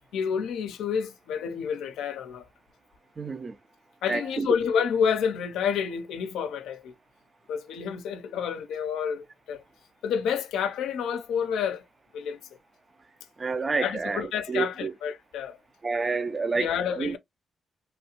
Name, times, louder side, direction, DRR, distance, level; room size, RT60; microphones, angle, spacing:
voice 1, 0.1-2.5 4.0-6.9 7.5-9.6 10.0-11.8 12.1-12.4 13.7-15.6 16.5-17.2, left 7 dB, 90° left, 0.5 m, -29 dB
voice 2, 3.2-3.6 4.1-4.5 13.4-14.9 15.8-17.2, right 4 dB, 40° right, 0.5 m, -29 dB
3.0 x 2.4 x 2.8 m
cardioid pair, 60°, 0 cm